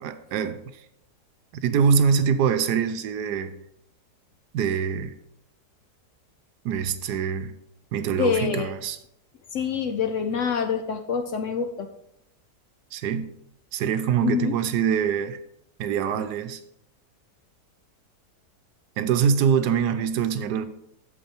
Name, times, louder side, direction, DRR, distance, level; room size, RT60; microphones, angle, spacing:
voice 1, 0.0-0.6 1.6-3.6 4.5-5.1 6.6-7.5 7.9-9.0 12.9-13.3 13.7-15.4 15.8-16.6 19.0-20.6, right 7 dB, 80° right, 1.2 m, -24 dB
voice 2, 8.1-8.8 9.5-11.9 14.2-14.5, left 6 dB, 60° left, 0.8 m, -26 dB
8.4 x 7.1 x 4.4 m
omnidirectional pair, 1.8 m